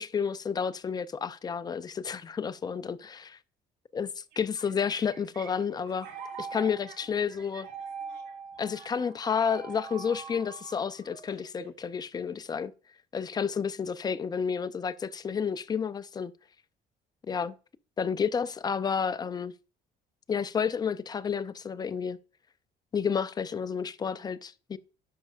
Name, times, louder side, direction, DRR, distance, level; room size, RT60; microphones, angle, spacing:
voice 1, 0.0-3.4 3.9-4.1 4.4-6.1 6.4-7.7 8.6-12.7 13.1-16.3 17.3-17.5 18.0-19.5 20.3-22.2 22.9-24.8, left 6 dB, 25° left, 0.4 m, -31 dB
sound 1, 4.3-11.9, right 6 dB, 90° right, 1.3 m, -43 dB
11.0 x 5.4 x 2.4 m
cardioid pair, 110°, 17 cm